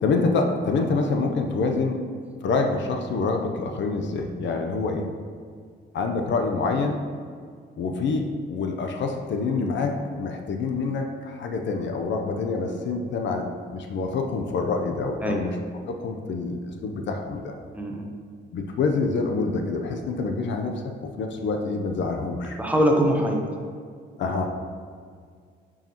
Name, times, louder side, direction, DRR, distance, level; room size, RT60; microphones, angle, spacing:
voice 1, 0.0-2.0 2.4-5.1 5.9-7.0 7.8-15.6 15.9-17.5 18.5-20.8 21.2-22.6 24.2-24.5, left 4 dB, 65° left, 4 dB, 0.7 m, -26 dB
voice 2, 17.7-18.1 22.6-23.4, equal, 5° right, 0 dB, 1.0 m, -22 dB
8.7 x 4.8 x 3.0 m, 2.1 s
cardioid pair, 90°, 20 cm